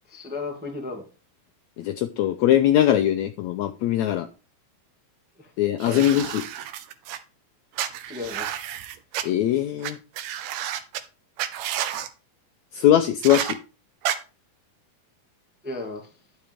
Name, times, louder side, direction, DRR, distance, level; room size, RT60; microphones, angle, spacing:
voice 1, 0.1-1.0 5.4-5.5 5.9-6.1 8.1-8.6 15.6-16.1, left 3 dB, 5° right, 0.9 m, -34 dB
voice 2, 1.8-4.3 5.6-6.4 9.2-10.0 12.7-13.6, left 11 dB, 85° left, 1.6 m, -21 dB
sound 1, 5.8-7.2 7.8-9.2 9.8-9.9 10.2-11.0 11.4-12.1 13.2-13.5 14.0-14.2, right 11 dB, 75° right, 2.4 m, -30 dB
11.5 x 7.1 x 3.6 m
omnidirectional pair, 4.0 m